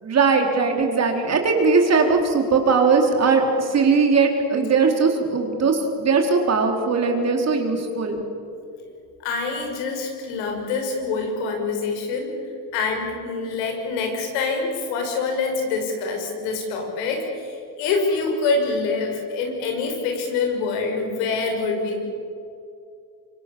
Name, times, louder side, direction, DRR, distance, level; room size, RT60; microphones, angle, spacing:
voice 1, 0.0-8.2, right 4 dB, 35° right, 3 dB, 4.1 m, -19 dB
voice 2, 9.2-12.4 12.7-22.1, left 4 dB, 80° left, 3 dB, 6.2 m, -25 dB
25.5 x 24.0 x 7.2 m, 2.5 s
supercardioid pair, 110°, 44 cm